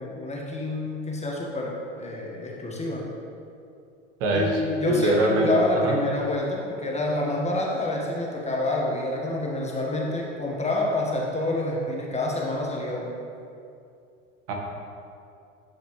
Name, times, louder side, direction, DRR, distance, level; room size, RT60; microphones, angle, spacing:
voice 1, 0.0-3.1 4.3-13.2, left 1 dB, 15° left, -2 dB, 1.6 m, -28 dB
voice 2, 4.9-5.5 5.8-5.9 14.5-14.6, right 1 dB, 65° right, 0 dB, 1.6 m, -22 dB
10.5 x 6.5 x 3.3 m, 2.5 s
hypercardioid pair, 80°, 39 cm